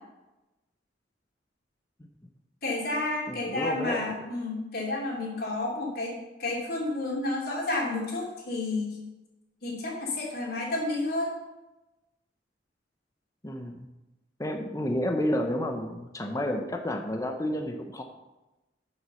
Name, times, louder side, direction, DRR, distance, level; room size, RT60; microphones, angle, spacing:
voice 1, 2.6-9.0 9.6-11.4, left 2 dB, 55° left, -3 dB, 3.0 m, -31 dB
voice 2, 3.3-4.1 13.4-13.9 14.4-18.0, left 1 dB, 20° left, 4 dB, 0.7 m, -30 dB
7.9 x 6.5 x 6.9 m, 1.0 s
head